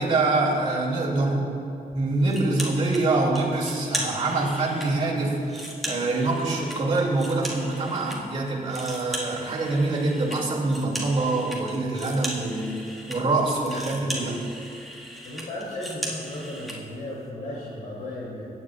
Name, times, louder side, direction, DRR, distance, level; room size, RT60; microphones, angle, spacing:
voice 1, 0.0-1.5 1.9-14.4, right 2 dB, 40° right, -5 dB, 2.5 m, -25 dB
sound 1, 2.3-3.0 3.3-4.9 5.3-8.2 8.5-16.8, equal, ahead, 1.9 m, -36 dB
voice 2, 15.2-18.5, left 1 dB, 70° left, -8 dB, 2.9 m, -35 dB
22.5 x 9.5 x 2.4 m, 2.6 s
wide cardioid pair, 140°, 15 cm